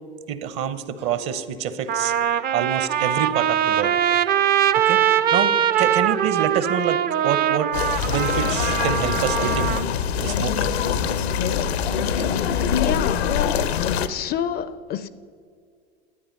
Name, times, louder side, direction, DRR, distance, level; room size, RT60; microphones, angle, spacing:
voice 1, 0.3-2.1 2.5-4.0 4.9-7.7 8.1-9.8 10.2-10.7, right 8 dB, 50° right, 0.9 m, -27 dB
Trumpet, 1.2-1.3 1.9-9.8, right 10 dB, 30° right, 0.4 m, -22 dB
sound 1, 7.7-14.1, left 7 dB, 85° left, 0.7 m, -24 dB
voice 2, 12.7-13.3 14.1-15.1, left 9 dB, 30° left, 0.4 m, -27 dB
11.0 x 9.7 x 5.3 m
hypercardioid pair, 85°, 31 cm